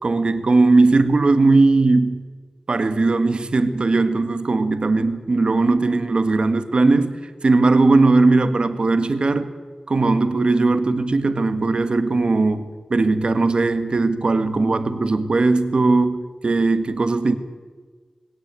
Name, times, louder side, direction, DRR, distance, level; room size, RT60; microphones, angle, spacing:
voice 1, 0.0-2.2 2.7-9.5 9.9-17.3, right 3 dB, 50° right, 9 dB, 1.8 m, -18 dB
20.0 x 18.0 x 9.1 m, 1.4 s
wide cardioid pair, 90°, 2 cm